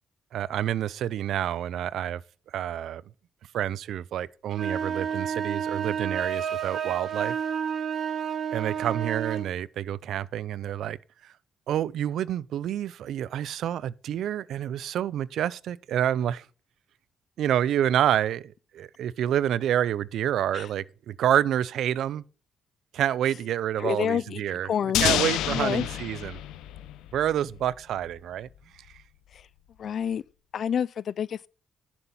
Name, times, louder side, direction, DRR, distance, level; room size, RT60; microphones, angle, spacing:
voice 1, 0.3-2.2 2.5-3.0 3.5-7.3 8.5-11.0 11.7-16.4 17.4-22.2 22.9-24.7 25.0-26.4 27.1-28.5, right 11 dB, 75° right, 0.5 m, -28 dB
sound 1, 4.5-9.5, right 7 dB, 55° right, 1.6 m, -30 dB
voice 2, 23.8-25.1 25.5-25.9 29.3-29.5 29.8-30.2 30.5-31.5, left 8 dB, 60° left, 0.4 m, -28 dB
sound 2, 24.9-27.7, left 13 dB, 90° left, 0.7 m, -28 dB
11.0 x 7.1 x 5.9 m
cardioid pair, 90°, 0 cm